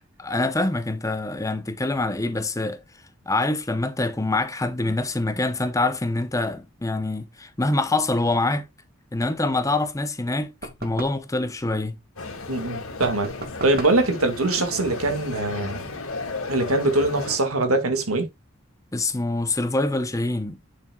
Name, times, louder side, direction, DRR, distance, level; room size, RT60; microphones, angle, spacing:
voice 1, 0.2-2.8 3.3-8.6 9.1-10.5 10.8-12.0 18.9-20.6, left 2 dB, 15° left, 0.8 m, -25 dB
sound 1, 10.6-11.3 13.0-14.1, right 2 dB, 45° right, 1.9 m, -36 dB
sound 2, 12.2-17.4, left 3 dB, 85° left, 2.2 m, -34 dB
voice 2, 12.5-13.3 13.6-15.9 16.5-18.3, right 2 dB, 85° right, 1.9 m, -22 dB
8.3 x 7.0 x 2.3 m
head